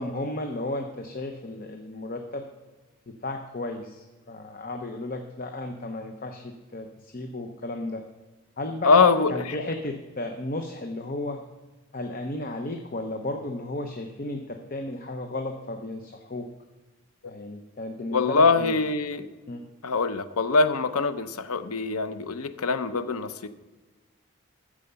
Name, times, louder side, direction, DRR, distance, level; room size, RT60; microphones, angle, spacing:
voice 1, 0.0-2.4 3.2-8.0 8.6-11.4 11.9-16.4 17.3-18.8 19.5-19.6, left 2 dB, 40° left, 4 dB, 0.8 m, -34 dB
voice 2, 8.8-9.6 18.1-19.3 19.8-23.5, left 4 dB, 80° left, 11 dB, 0.7 m, -23 dB
14.0 x 4.9 x 6.9 m, 1.3 s
head